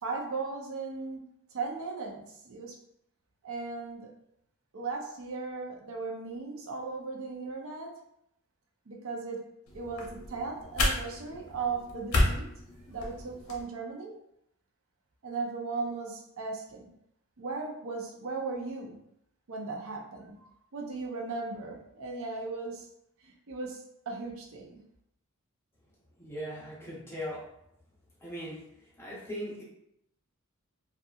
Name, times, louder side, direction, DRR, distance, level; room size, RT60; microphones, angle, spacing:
voice 1, 0.0-1.2 1.5-2.7 3.4-4.1 4.7-7.9 8.9-9.4 9.7-12.4 12.9-14.1 15.2-16.9 17.4-19.0 19.5-22.9 23.2-23.8 24.1-24.8, right 4 dB, 65° right, 0 dB, 0.5 m, -37 dB
sound 1, 9.7-13.6, left 1 dB, 65° left, 0.6 m, -32 dB
voice 2, 26.2-27.5 28.2-28.7 29.0-29.6, equal, 10° left, -5 dB, 0.7 m, -39 dB
2.7 x 2.3 x 2.3 m, 0.77 s
head